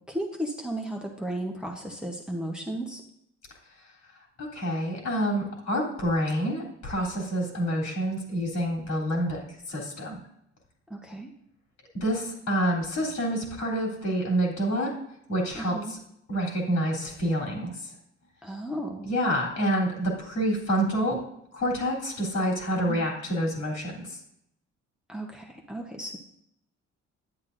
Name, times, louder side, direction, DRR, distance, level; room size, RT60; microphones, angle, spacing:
voice 1, 0.1-3.0 10.9-11.3 15.5-15.9 18.4-19.1 22.9-23.0 25.1-26.2, right 1 dB, 5° right, 0 dB, 1.0 m, -34 dB
voice 2, 4.4-10.2 12.0-14.9 15.3-16.0 16.3-17.9 19.0-21.2 21.5-24.2, equal, 60° left, -1 dB, 3.2 m, -28 dB
9.8 x 8.2 x 2.6 m, 0.77 s
cardioid pair, 90°, 30 cm